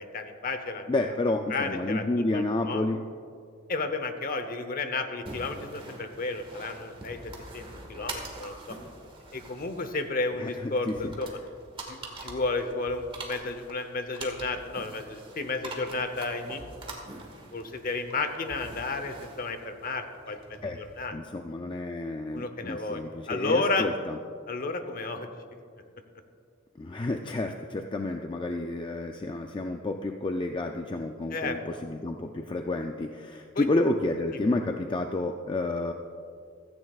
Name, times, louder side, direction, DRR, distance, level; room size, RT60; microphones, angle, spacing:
voice 1, 0.0-0.9 1.5-2.9 3.7-8.8 9.3-11.4 11.9-16.6 17.5-21.2 22.3-23.0 23.3-23.9 24.5-25.3 31.3-31.8 33.5-33.6 34.3-34.5, left 3 dB, 45° left, 8 dB, 0.8 m, -32 dB
voice 2, 0.9-3.0 10.4-11.1 20.6-20.8 21.1-24.2 26.8-35.9, left 2 dB, 25° left, 4 dB, 0.4 m, -30 dB
sound 1, 5.3-21.1, right 2 dB, 25° right, 1.5 m, -44 dB
16.0 x 14.0 x 2.4 m, 2.3 s
head